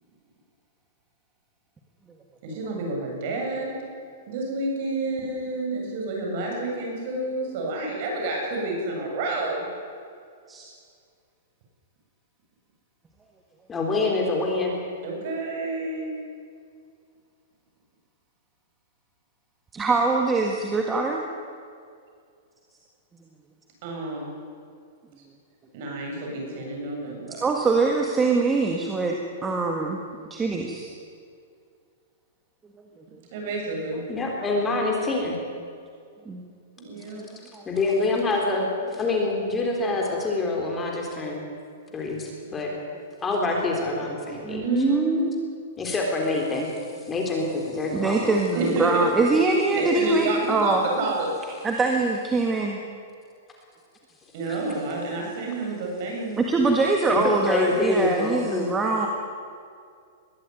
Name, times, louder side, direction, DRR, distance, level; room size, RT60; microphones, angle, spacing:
voice 1, 2.4-3.7 4.3-9.7 15.0-16.1 23.8-24.3 25.7-27.5 33.3-34.0 36.8-37.2 44.6-45.3 48.5-49.1 49.7-51.3 54.3-56.4, right 2 dB, 50° right, 0 dB, 7.7 m, -29 dB
voice 2, 13.7-14.8 34.1-35.4 37.7-41.4 41.9-42.7 43.2-44.7 45.8-46.7 47.1-48.4 54.5-54.6 57.1-58.7, left 2 dB, 15° left, 0 dB, 3.8 m, -26 dB
voice 3, 19.7-21.2 27.4-29.1 29.4-30.0 30.3-30.9 36.3-36.4 37.5-37.6 44.4-45.3 47.9-50.8 51.6-52.8 56.4-59.1, right 3 dB, 15° right, 1 dB, 1.7 m, -23 dB
21.5 x 14.5 x 9.3 m, 2.3 s
hypercardioid pair, 155°, 0 cm